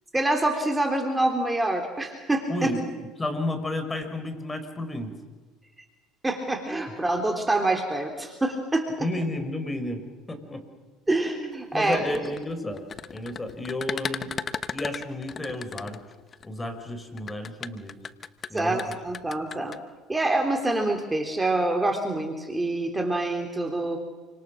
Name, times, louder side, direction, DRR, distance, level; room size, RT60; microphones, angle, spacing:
voice 1, 0.1-2.7 6.2-9.1 11.1-12.2 18.5-19.7 20.1-24.0, right 2 dB, 15° right, 4 dB, 3.6 m, -26 dB
voice 2, 2.5-2.8 3.2-5.1 9.0-10.6 11.7-14.4 14.7-16.0 16.4-17.9 18.5-18.9, left 1 dB, 20° left, 7 dB, 5.6 m, -32 dB
sound 1, 11.8-16.5 17.2-19.8, left 6 dB, 40° left, 1.2 m, -35 dB
28.5 x 26.0 x 6.6 m, 1.3 s
supercardioid pair, 85°, 0 cm